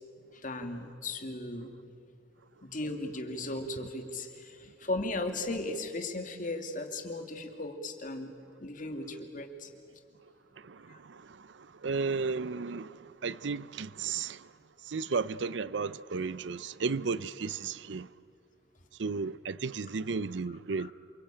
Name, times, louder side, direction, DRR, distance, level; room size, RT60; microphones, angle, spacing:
voice 1, 0.3-1.7 2.6-8.3 8.6-9.7 10.9-11.0 20.8-20.9, left 2 dB, 45° left, 2.3 m, -36 dB
voice 2, 10.6-14.5 14.8-18.1 19.0-20.9, right 4 dB, 70° right, 0.6 m, -34 dB
28.0 x 24.0 x 8.9 m
head